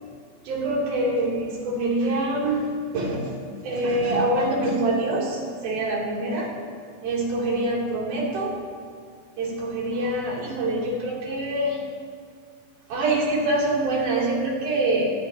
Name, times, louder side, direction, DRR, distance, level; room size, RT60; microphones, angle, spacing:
voice 1, 0.4-3.3 3.6-6.5 7.0-8.6 9.4-11.8 12.9-15.1, right 1 dB, 50° right, -4 dB, 4.6 m, -25 dB
25.0 x 19.0 x 2.9 m, 2.1 s
omnidirectional pair, 5.8 m